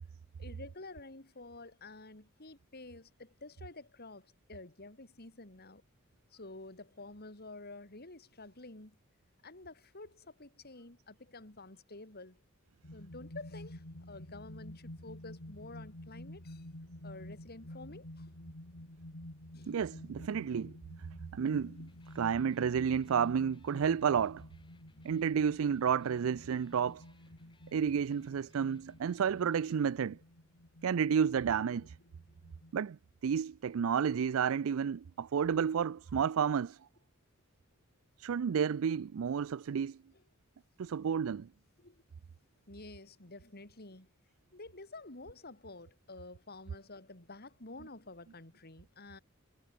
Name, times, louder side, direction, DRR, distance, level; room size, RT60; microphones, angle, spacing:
voice 1, 0.4-5.8 6.3-9.0 9.4-12.4 12.9-16.7 17.0-18.3 19.5-19.7 41.8-42.0 42.7-44.1 44.5-49.2, left 2 dB, 50° left, 3.7 m, -50 dB
sound 1, 12.8-32.7, left 1 dB, 90° left, 3.4 m, -51 dB
voice 2, 19.7-20.7 21.3-21.8 22.2-24.4 25.0-27.0 27.7-30.2 30.8-31.9 32.7-33.0 33.2-36.8 38.2-40.0 40.8-41.5, right 7 dB, 75° right, 0.4 m, -31 dB
Electric guitar, 21.7-29.7, left 1 dB, 25° left, 6.7 m, -66 dB
head